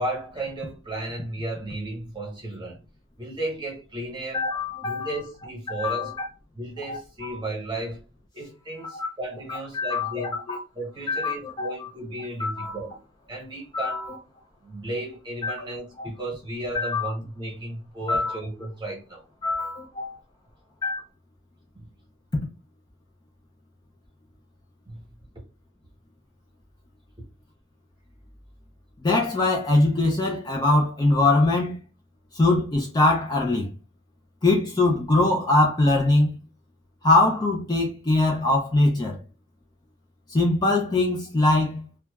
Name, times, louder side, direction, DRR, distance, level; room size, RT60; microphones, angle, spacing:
voice 1, 0.0-2.8 3.2-4.4 4.8-6.1 6.6-8.0 8.3-10.4 10.7-13.0 13.3-14.1 14.6-19.2 21.7-21.9 24.9-25.0, right 1 dB, 20° right, 1.0 m, -34 dB
voice 2, 4.3-5.2 5.7-6.3 6.9-7.3 8.9-9.1 9.7-10.1 10.5-10.6 11.1-11.9 12.4-12.8 13.7-14.2 15.4-15.5 16.0-16.1 16.7-17.1 18.1-18.4 19.4-20.2 20.8-21.0 29.0-31.8 32.3-33.7 34.4-36.3 37.0-39.2 40.3-41.8, left 2 dB, 20° left, 0.4 m, -22 dB
2.8 x 2.2 x 2.3 m
head